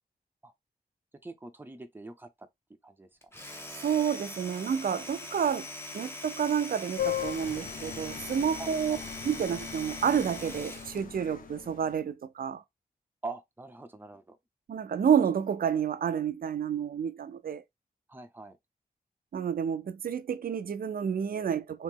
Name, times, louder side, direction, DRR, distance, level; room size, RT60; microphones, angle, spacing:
voice 1, 1.2-2.5 2.8-3.1 3.4-3.5 8.6-9.0 13.2-14.4 18.1-18.6, right 3 dB, 10° right, 0.6 m, -43 dB
Domestic sounds home sounds, 3.2-11.1, left 2 dB, 15° left, 0.8 m, -42 dB
voice 2, 3.8-5.7 5.9-9.0 9.2-12.6 14.7-17.6 19.3-21.8, right 8 dB, 65° right, 0.5 m, -29 dB
sound 1, 7.0-12.0, left 9 dB, 60° left, 0.6 m, -38 dB
3.1 x 3.0 x 3.5 m
wide cardioid pair, 130°, 16 cm